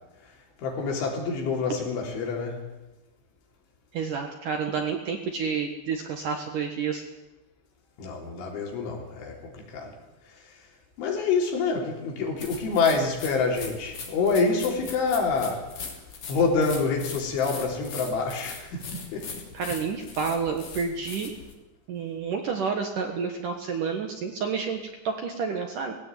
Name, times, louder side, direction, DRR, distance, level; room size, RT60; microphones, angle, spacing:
voice 1, 0.6-2.6 8.0-10.0 10.3-10.6 11.0-15.7 16.3-19.4, left 4 dB, 75° left, 1 dB, 6.0 m, -27 dB
voice 2, 3.9-7.0 19.5-21.3 21.9-25.9, right 5 dB, 60° right, 4 dB, 2.3 m, -29 dB
sound 1, 12.4-21.5, left 5 dB, 45° left, 4.3 m, -41 dB
19.5 x 16.0 x 9.1 m, 1.0 s
omnidirectional pair, 5.5 m